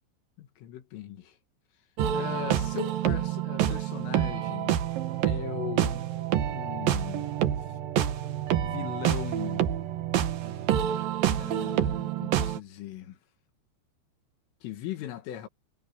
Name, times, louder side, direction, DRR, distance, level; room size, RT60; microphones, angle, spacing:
voice 1, 0.4-1.4 2.1-4.8 5.2-6.0 6.5-7.3 7.7-7.8 8.6-9.7 11.4-13.2 14.6-15.5, left 12 dB, 80° left, 4.6 m, -39 dB
sound 1, 2.0-12.6, right 11 dB, 65° right, 2.4 m, -28 dB
omnidirectional pair, 5.8 m